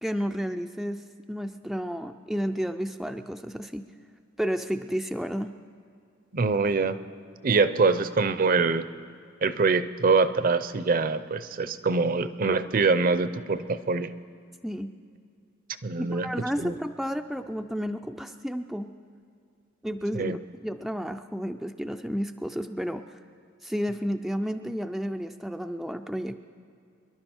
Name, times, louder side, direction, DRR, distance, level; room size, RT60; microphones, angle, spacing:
voice 1, 0.0-3.9 4.4-5.6 14.6-14.9 16.0-18.9 19.8-23.1 23.6-26.4, equal, ahead, 5 dB, 0.3 m, -31 dB
voice 2, 6.3-7.0 7.4-8.8 9.4-14.1 15.8-16.3 16.6-16.7 20.1-20.4, right 4 dB, 45° right, 13 dB, 0.6 m, -24 dB
26.0 x 11.5 x 4.5 m, 2.4 s
head